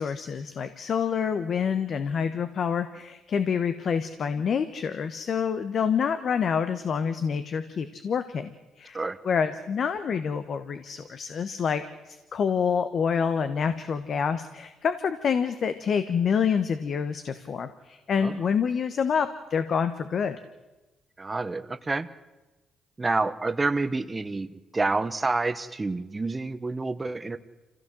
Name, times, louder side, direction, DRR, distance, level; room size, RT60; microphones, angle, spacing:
voice 1, 0.0-8.5 8.8-9.0 9.2-11.8 12.1-20.4, left 6 dB, 55° left, 11 dB, 1.1 m, -27 dB
voice 2, 21.2-22.1 23.0-27.4, right 3 dB, 25° right, 12 dB, 1.0 m, -28 dB
26.0 x 16.0 x 7.6 m, 1.1 s
cardioid pair, 90°, 0 cm